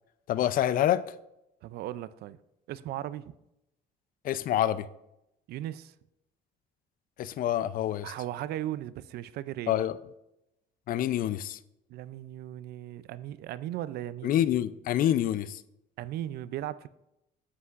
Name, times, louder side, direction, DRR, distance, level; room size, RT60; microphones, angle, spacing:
voice 1, 0.3-1.0 4.2-4.9 7.2-8.1 9.7-10.0 10.9-11.6 14.2-15.6, left 11 dB, 55° left, 0.4 m, -27 dB
voice 2, 1.6-2.4 2.7-3.3 5.5-5.9 8.0-9.7 11.9-14.4 16.0-16.9, right 13 dB, 70° right, 0.4 m, -37 dB
9.6 x 8.1 x 2.5 m
cardioid pair, 110°, 17 cm